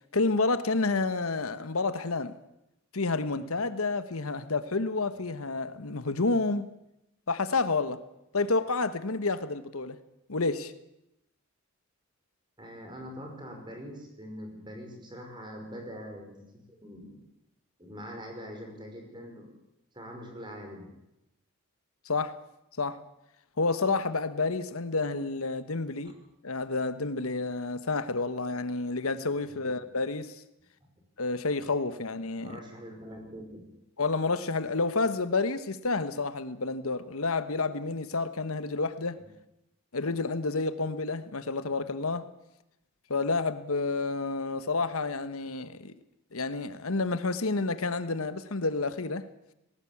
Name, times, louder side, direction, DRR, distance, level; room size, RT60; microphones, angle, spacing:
voice 1, 0.1-2.3 2.9-6.7 7.3-8.0 8.3-10.0 10.3-10.7 22.0-22.3 22.8-23.0 23.6-26.1 26.4-30.4 31.2-32.6 34.0-39.2 39.9-42.3 43.1-45.9 46.3-49.3, left 3 dB, 80° left, 1.2 m, -29 dB
voice 2, 12.6-17.2 17.8-19.5 19.9-21.0 29.5-29.7 32.4-33.7, equal, 20° right, 5.4 m, -43 dB
19.0 x 18.0 x 8.6 m
head